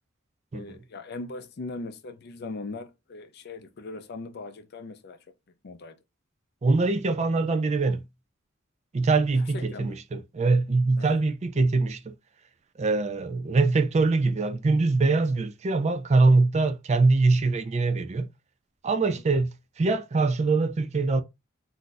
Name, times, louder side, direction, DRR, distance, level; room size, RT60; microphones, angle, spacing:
voice 1, 0.5-5.2 5.6-6.0 9.3-10.0 11.0-11.2 19.0-19.2, left 3 dB, 55° left, 0.5 m, -39 dB
voice 2, 6.6-8.0 8.9-12.1 12.8-18.3 18.8-21.2, right 3 dB, 35° right, 0.4 m, -23 dB
2.6 x 2.3 x 3.8 m
head